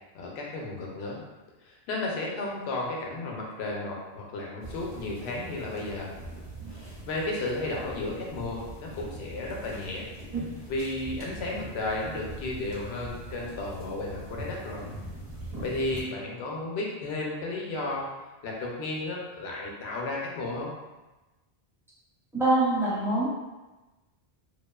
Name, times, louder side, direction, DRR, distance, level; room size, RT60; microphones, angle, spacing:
voice 1, 0.1-1.2 1.7-6.1 7.1-10.1 10.7-14.9 15.6-18.1 18.4-20.7, left 2 dB, 80° left, -2 dB, 0.8 m, -33 dB
sound 1, 4.6-16.0, right 2 dB, 45° right, 0.9 m, -41 dB
voice 2, 22.3-23.3, right 2 dB, 5° right, -9 dB, 0.5 m, -24 dB
2.5 x 2.3 x 2.2 m, 1.1 s
omnidirectional pair, 1.1 m